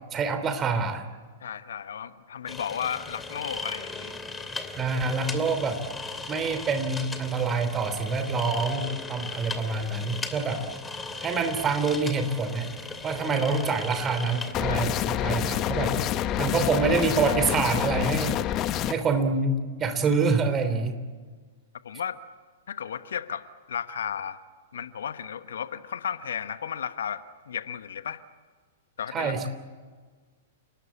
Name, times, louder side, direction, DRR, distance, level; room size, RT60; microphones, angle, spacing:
voice 1, 0.1-1.0 4.8-5.8 6.3-10.6 11.2-12.7 13.0-16.0 16.4-18.3 18.9-21.0 29.1-29.5, right 4 dB, 25° right, 9 dB, 3.2 m, -26 dB
voice 2, 1.4-4.2 14.7-14.8 21.8-22.2 22.7-24.4 24.7-28.2 29.0-29.3, left 8 dB, 65° left, 12 dB, 1.2 m, -34 dB
sound 1, 2.5-14.5, left 3 dB, 10° left, 2.7 m, -37 dB
sound 2, 14.5-18.9, left 12 dB, 30° left, 1.2 m, -27 dB
30.0 x 19.5 x 8.5 m, 1.5 s
figure-of-eight pair, 105°, 0 cm